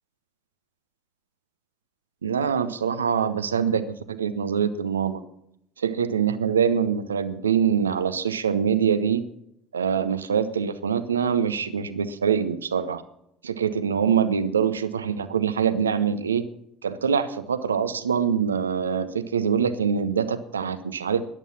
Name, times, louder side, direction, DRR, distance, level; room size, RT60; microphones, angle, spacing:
voice 1, 2.2-5.2 5.8-9.2 9.7-13.0 13.4-16.4 16.8-21.2, right 7 dB, 80° right, 13 dB, 0.7 m, -24 dB
13.5 x 11.0 x 5.7 m, 0.77 s
figure-of-eight pair, 65°, 0 cm